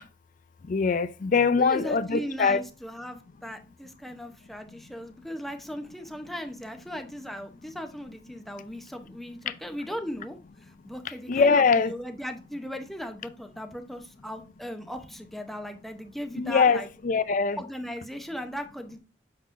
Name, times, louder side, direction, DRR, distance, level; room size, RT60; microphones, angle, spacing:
voice 1, 0.7-2.6 11.3-11.9 16.4-17.6, left 5 dB, 50° left, 0.4 m, -22 dB
voice 2, 1.6-10.4 10.6-16.9 17.6-19.0, equal, ahead, 0.7 m, -38 dB
6.7 x 5.6 x 2.5 m
head